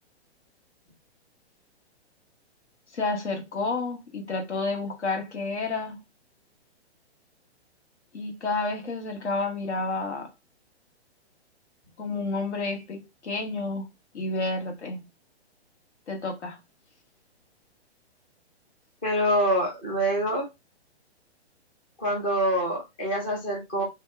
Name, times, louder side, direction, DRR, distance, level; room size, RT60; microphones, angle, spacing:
voice 1, 2.9-6.0 8.1-10.3 12.0-13.9 14.1-15.0 16.1-16.6, left 3 dB, 85° left, 1.7 m, -30 dB
voice 2, 19.0-20.5 22.0-23.8, equal, 10° left, 0.3 m, -25 dB
4.1 x 2.8 x 3.4 m
hypercardioid pair, 155°, 33 cm